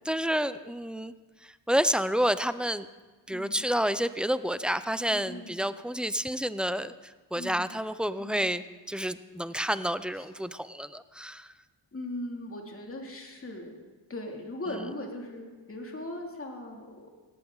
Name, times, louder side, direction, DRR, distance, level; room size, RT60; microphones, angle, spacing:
voice 1, 0.1-1.1 1.4-2.9 3.3-11.5, equal, ahead, 14 dB, 0.3 m, -29 dB
voice 2, 3.3-3.6 5.1-5.6 7.4-7.7 8.2-8.5 11.9-13.7 14.1-17.1, left 1 dB, 30° left, 1 dB, 2.6 m, -39 dB
19.0 x 15.0 x 3.9 m, 1.3 s
wide cardioid pair, 115°, 45 cm